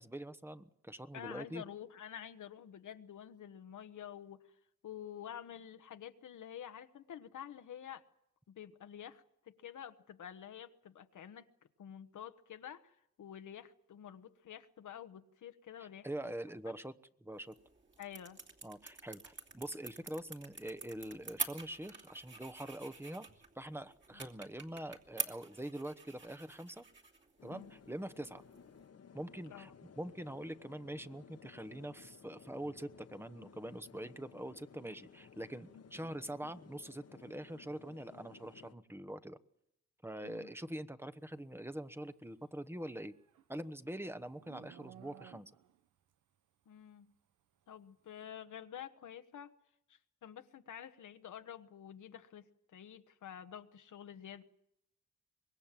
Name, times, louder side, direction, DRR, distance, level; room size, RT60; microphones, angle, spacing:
voice 1, 0.0-1.6 15.8-16.9 17.2-17.5 18.6-23.3 23.5-26.8 27.4-28.4 29.1-39.4 40.0-43.1 43.5-45.5, right 1 dB, 10° right, 1.0 m, -44 dB
voice 2, 1.1-4.4 4.8-8.0 8.5-11.5 11.8-16.3 18.0-18.4 24.1-24.2 27.5-27.7 29.5-29.7 35.7-35.8 40.2-40.5 46.7-47.1 47.7-49.5 49.9-54.4, left 9 dB, 80° left, 1.3 m, -49 dB
sound 1, 17.3-28.9, right 4 dB, 40° right, 2.9 m, -47 dB
sound 2, 27.4-38.7, left 6 dB, 55° left, 1.2 m, -58 dB
Livestock farm animals working animals, 42.6-45.9, right 10 dB, 90° right, 1.0 m, -58 dB
24.5 x 21.0 x 7.6 m
cardioid pair, 80°, 30 cm